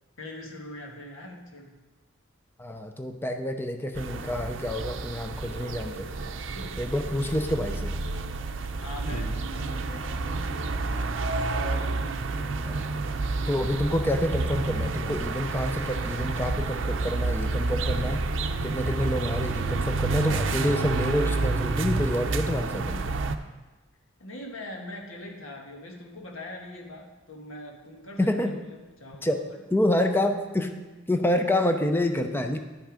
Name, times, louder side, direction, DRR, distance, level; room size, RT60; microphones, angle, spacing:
voice 1, 0.2-1.8 6.5-6.8 8.5-13.0 13.8-13.9 18.9-19.1 24.2-29.5, left 1 dB, 90° left, 1 dB, 1.5 m, -42 dB
voice 2, 2.6-6.1 6.8-7.9 9.1-9.4 12.6-12.9 13.5-18.3 18.6-23.0 28.2-28.6 29.2-29.4 29.7-30.7 31.1-32.6, left 1 dB, 10° left, 6 dB, 0.6 m, -27 dB
sound 1, 3.9-23.4, right 3 dB, 65° right, 0.6 m, -29 dB
11.0 x 6.0 x 5.0 m, 1.2 s
head